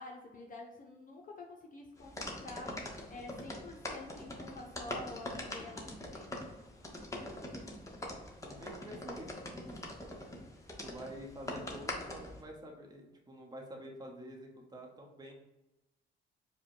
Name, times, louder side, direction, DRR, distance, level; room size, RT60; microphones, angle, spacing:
voice 1, 0.0-6.3, left 2 dB, 45° left, 1 dB, 0.7 m, -49 dB
sound 1, 2.0-12.4, left 1 dB, 15° left, 0.9 m, -43 dB
voice 2, 8.4-9.9 10.8-15.3, equal, 20° right, 1 dB, 0.9 m, -48 dB
4.9 x 2.2 x 4.7 m, 0.98 s
cardioid pair, 90°, 20 cm